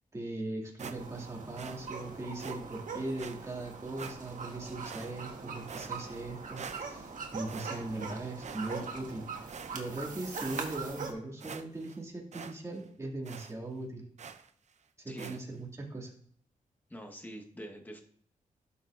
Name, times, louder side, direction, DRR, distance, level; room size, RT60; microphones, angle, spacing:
voice 1, 0.1-9.5 9.7-14.0 15.0-16.1, right 2 dB, 20° right, -2 dB, 2.3 m, -39 dB
sound 1, 0.8-1.3 1.6-1.8 2.4-2.6 3.2-3.4 4.0-4.4 4.8-5.4 5.7-6.3 6.6-7.1 7.5-8.1 8.4-9.1 9.5-10.0 10.4-10.7 11.1-11.2 11.4-12.0 12.3-12.5 12.8-12.9 13.2-13.5 14.2-14.5 15.2-15.4, right 6 dB, 55° right, 0.6 m, -46 dB
sound 2, 0.9-11.1, right 5 dB, 70° right, 1.4 m, -42 dB
voice 2, 15.1-15.4 16.9-18.0, equal, 15° left, 2 dB, 1.2 m, -45 dB
12.5 x 5.6 x 2.5 m, 0.64 s
cardioid pair, 90°, 14 cm